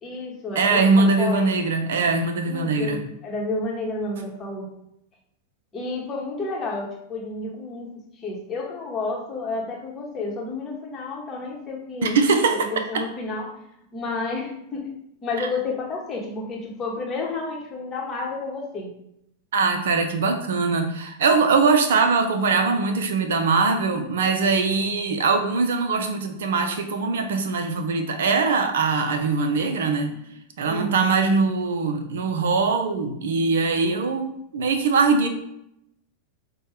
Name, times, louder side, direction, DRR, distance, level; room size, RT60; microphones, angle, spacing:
voice 1, 0.0-1.5 2.5-4.7 5.7-7.9 8.2-12.2 12.5-13.5 13.9-14.9 15.2-18.9 30.6-31.1, left 3 dB, 25° left, -2 dB, 1.0 m, -31 dB
voice 2, 0.6-3.0 12.0-13.0 15.4-15.5 19.5-30.1 30.6-35.3, right 4 dB, 60° right, 6 dB, 0.5 m, -22 dB
5.2 x 2.2 x 3.3 m, 0.77 s
figure-of-eight pair, 90°, 0 cm